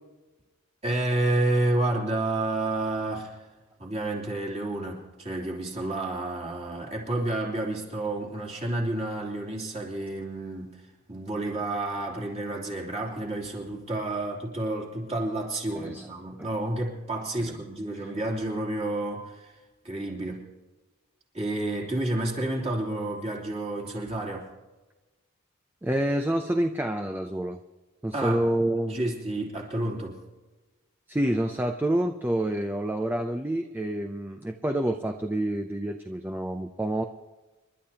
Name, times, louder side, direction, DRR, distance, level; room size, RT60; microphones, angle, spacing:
voice 1, 0.8-3.5 3.8-10.8 11.1-19.5 19.8-20.5 21.3-24.5 28.1-28.5 28.8-30.2, right 2 dB, 30° right, -2 dB, 2.9 m, -30 dB
voice 2, 15.7-16.1 16.4-16.5 25.8-27.6 28.0-29.0 31.1-37.0, right 1 dB, 10° right, 5 dB, 0.5 m, -28 dB
29.0 x 12.0 x 2.9 m, 1.2 s
head